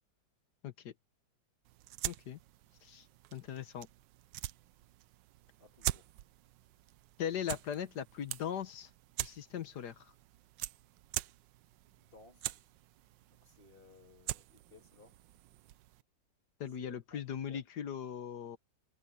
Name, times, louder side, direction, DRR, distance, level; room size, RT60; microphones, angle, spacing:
sound 1, 1.6-16.0, right 15 dB, 85° right, 1.3 m, -44 dB
voice 1, 2.0-2.4 2.8-3.0 3.3-3.9 7.2-8.9 9.2-10.1 16.6-18.6, left 9 dB, 65° left, 1.6 m, -39 dB
voice 2, 5.6-6.1 12.1-12.6 13.4-15.2 16.7-17.6, left 3 dB, 30° left, 2.2 m, -60 dB
omnidirectional pair, 2.0 m